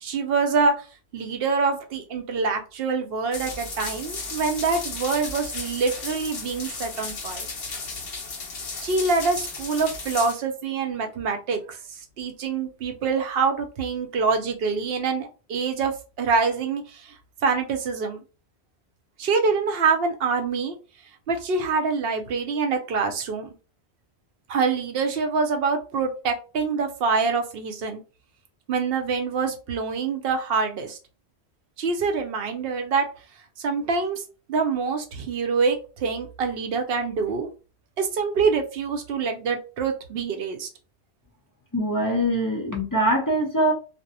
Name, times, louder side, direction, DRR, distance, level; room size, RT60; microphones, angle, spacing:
voice 1, 0.0-0.8 1.1-7.5 8.8-15.9 16.2-17.1 17.4-18.2 19.2-20.7 21.3-23.5 24.5-28.0 28.7-31.0 31.8-33.1 33.6-34.2 34.5-37.5 38.0-40.7, right 4 dB, 65° right, 5 dB, 0.8 m, -25 dB
sound 1, 3.3-10.3, left 3 dB, 65° left, 1.0 m, -34 dB
voice 2, 41.7-43.7, right 1 dB, 30° left, -1 dB, 0.4 m, -23 dB
2.5 x 2.0 x 2.7 m, 0.33 s
omnidirectional pair, 1.1 m